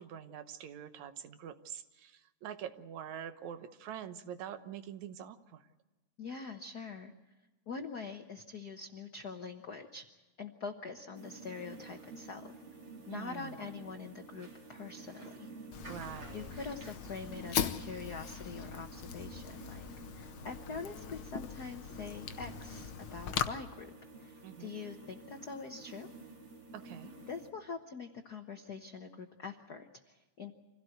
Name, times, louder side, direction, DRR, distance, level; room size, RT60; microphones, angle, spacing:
voice 1, 0.0-5.7 13.1-13.6 15.9-16.5 24.4-24.7 26.7-27.1, right 9 dB, 75° right, 10 dB, 2.3 m, -45 dB
voice 2, 6.2-7.1 7.7-10.0 10.4-12.5 13.1-15.5 16.3-19.9 20.1-23.9 24.2-26.1 27.3-30.5, left 5 dB, 65° left, 5 dB, 0.9 m, -44 dB
sound 1, 11.1-27.5, right 3 dB, 40° right, 3.4 m, -51 dB
Fire, 15.7-23.5, left 9 dB, 85° left, 1.0 m, -40 dB
26.0 x 16.5 x 7.9 m, 1.2 s
omnidirectional pair, 3.3 m